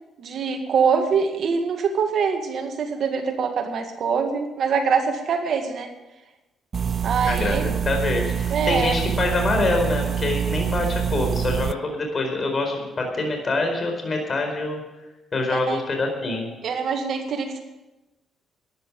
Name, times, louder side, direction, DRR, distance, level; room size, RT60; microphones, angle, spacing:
voice 1, 0.2-5.9 7.0-7.7 8.5-9.0 15.5-15.8 16.6-17.6, right 6 dB, 60° right, 5 dB, 2.0 m, -24 dB
sound 1, 6.7-11.7, right 8 dB, 45° right, 0.4 m, -25 dB
voice 2, 7.8-14.8 15.3-16.5, left 2 dB, 40° left, 3 dB, 4.5 m, -25 dB
13.5 x 10.5 x 7.6 m, 1.0 s
cardioid pair, 90°, 0 cm